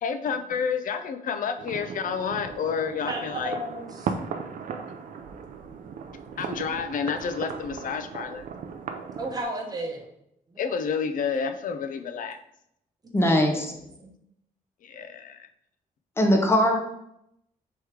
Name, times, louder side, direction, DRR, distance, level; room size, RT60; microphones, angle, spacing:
voice 1, 0.0-3.6 6.4-8.4 10.6-12.4 14.8-15.5, left 6 dB, 65° left, 9 dB, 0.4 m, -30 dB
sound 1, 1.6-9.4, right 6 dB, 65° right, 0.4 m, -37 dB
voice 2, 3.1-4.1 9.2-10.1 10.5-10.6 13.2-14.1, right 1 dB, 25° right, 0 dB, 0.9 m, -34 dB
voice 3, 13.1-13.7 16.2-16.8, equal, 15° left, 2 dB, 0.7 m, -20 dB
3.6 x 3.1 x 4.6 m, 0.78 s
wide cardioid pair, 140°, 15 cm